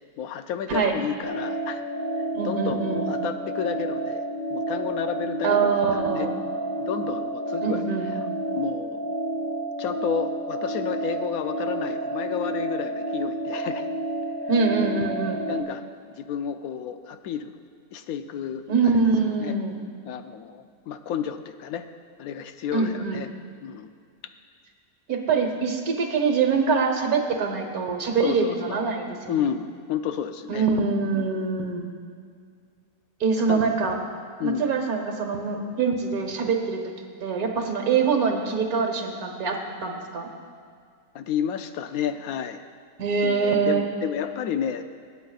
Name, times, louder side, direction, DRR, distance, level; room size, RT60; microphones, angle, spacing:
voice 1, 0.2-1.8 2.4-4.2 4.5-5.7 6.0-6.3 6.8-7.8 8.6-9.0 9.8-13.9 14.9-15.1 15.5-15.9 16.2-17.6 17.9-18.7 19.4-19.5 20.1-21.9 22.2-23.3 23.6-23.9 28.2-28.8 29.3-30.7 31.1-31.4 33.5-33.6 34.4-34.7 41.1-42.6 43.2-44.8, left 8 dB, 75° left, 8 dB, 1.0 m, -31 dB
sound 1, 1.2-15.6, right 1 dB, 40° right, 0.8 m, -30 dB
voice 2, 2.3-3.0 5.4-6.3 7.6-8.1 14.5-15.4 18.7-19.8 22.7-23.2 25.1-29.5 30.5-31.9 33.2-34.0 34.4-36.8 37.2-40.3 43.0-43.8, right 5 dB, 70° right, 3 dB, 1.6 m, -24 dB
25.0 x 8.4 x 2.4 m, 2.2 s
omnidirectional pair, 1.6 m